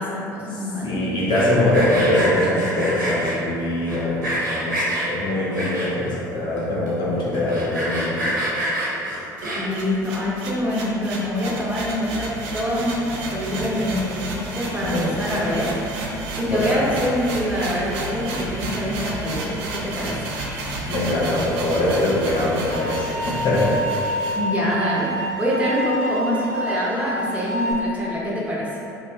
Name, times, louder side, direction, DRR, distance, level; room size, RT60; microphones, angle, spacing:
voice 1, 0.0-0.9 9.5-12.3 12.5-15.7 16.4-20.3 24.3-28.7, left 1 dB, 15° right, -6 dB, 0.9 m, -25 dB
voice 2, 0.8-8.3 14.8-15.2 16.5-16.9 20.9-23.7, left 1 dB, 50° left, -7 dB, 1.0 m, -23 dB
Sawing, 1.2-3.3 3.9-5.1 5.5-6.1 6.6-6.7 6.9-7.0 7.3-9.8, right 1 dB, 85° right, 0.9 m, -26 dB
sound 1, 9.4-24.4, right 2 dB, 65° right, 0.5 m, -31 dB
sound 2, 22.7-27.7, equal, 65° left, 0.6 m, -28 dB
2.7 x 2.3 x 3.5 m, 2.7 s
hypercardioid pair, 60°, 10 cm